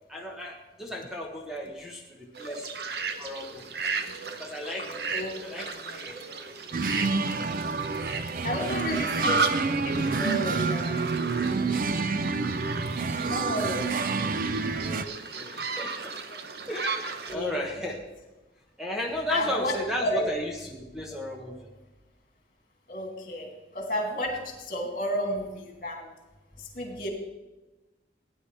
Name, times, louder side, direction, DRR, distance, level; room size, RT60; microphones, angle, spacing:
voice 1, 0.1-2.6 3.2-3.6 4.4-5.1 5.4-6.2 8.6-9.1 14.8-16.1 16.7-18.0 18.8-21.6, left 1 dB, ahead, -1 dB, 1.3 m, -35 dB
sound 1, 2.4-17.4, right 4 dB, 65° right, 1.0 m, -34 dB
sound 2, 6.7-15.0, right 4 dB, 50° right, 0.5 m, -28 dB
voice 2, 8.4-9.5 9.8-10.9 13.1-13.9 14.5-14.8 17.3-17.5 19.3-19.7 20.0-20.2 22.9-23.5 23.7-26.1 26.6-27.1, equal, 50° left, 1 dB, 2.9 m, -32 dB
17.5 x 10.0 x 3.4 m, 1.1 s
head